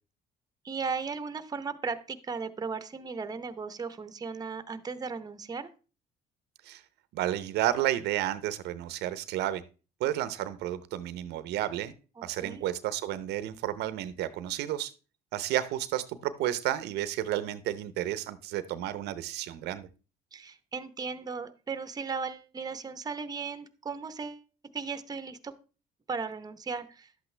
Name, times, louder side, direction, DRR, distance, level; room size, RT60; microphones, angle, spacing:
voice 1, 0.6-5.7 12.2-12.6 20.3-24.4 24.7-25.5 26.1-27.1, right 5 dB, 20° right, 12 dB, 0.8 m, -36 dB
voice 2, 7.1-9.6 10.0-11.9 12.2-14.9 15.3-19.9, right 13 dB, 80° right, 15 dB, 0.7 m, -31 dB
11.5 x 8.2 x 3.3 m, 0.35 s
cardioid pair, 110°, 17 cm